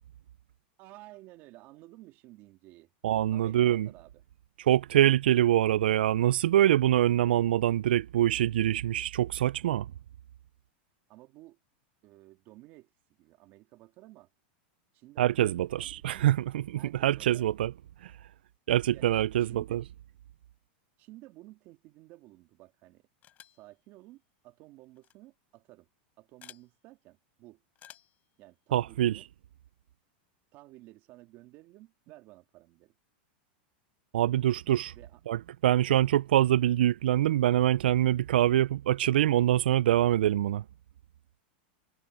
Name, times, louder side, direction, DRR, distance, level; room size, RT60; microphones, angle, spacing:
voice 1, 0.8-2.9 3.3-4.2 11.1-11.6 12.0-12.9 13.2-14.3 14.9-16.3 16.8-17.5 18.9-19.1 19.4-19.8 21.0-23.1 23.5-25.9 26.2-27.6 28.4-29.3 30.5-32.9 34.9-35.2, right 18 dB, 40° right, 2.3 m, -53 dB
voice 2, 3.0-3.9 4.7-9.9 15.2-17.7 18.0-18.1 18.7-19.8 28.7-29.2 34.1-34.9 35.3-40.6, right 12 dB, 90° right, 0.4 m, -25 dB
sound 1, 23.2-23.7 25.0-25.1 26.4-26.7 27.8-28.2, left 12 dB, 30° left, 7.4 m, -52 dB
supercardioid pair, 145°, 5 cm